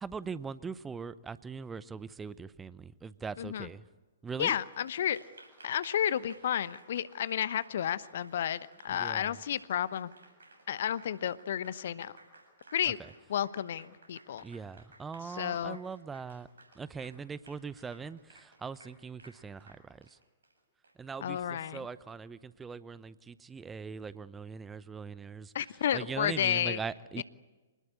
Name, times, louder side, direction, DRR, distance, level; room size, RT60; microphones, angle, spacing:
voice 1, 0.0-3.8 4.2-4.6 8.9-9.4 13.0-13.1 14.4-16.5 16.7-20.2 21.0-25.5 25.9-27.2, right 5 dB, 10° right, 17 dB, 0.7 m, -41 dB
voice 2, 3.4-3.7 4.4-5.2 5.6-10.1 10.7-12.1 12.7-13.0 13.3-14.4 15.3-15.8 21.2-21.8 25.5-26.8 27.2-27.3, left 10 dB, 55° left, 17 dB, 1.0 m, -32 dB
Applause, 4.4-22.1, right 2 dB, 70° right, 7.6 m, -57 dB
26.0 x 19.5 x 9.9 m, 1.3 s
figure-of-eight pair, 115°, 0 cm